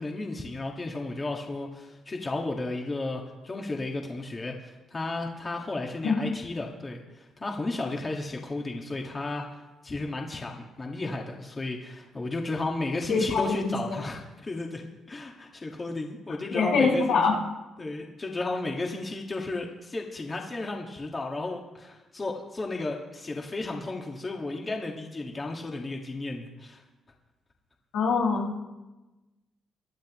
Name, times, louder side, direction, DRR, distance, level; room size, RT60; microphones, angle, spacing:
voice 1, 0.0-17.2 17.8-26.8, left 2 dB, 30° left, 1 dB, 1.7 m, -33 dB
voice 2, 13.1-14.0 16.5-17.4 27.9-28.6, left 4 dB, 90° left, -3 dB, 5.2 m, -24 dB
23.0 x 11.5 x 3.1 m, 1.1 s
cardioid pair, 90°, 0 cm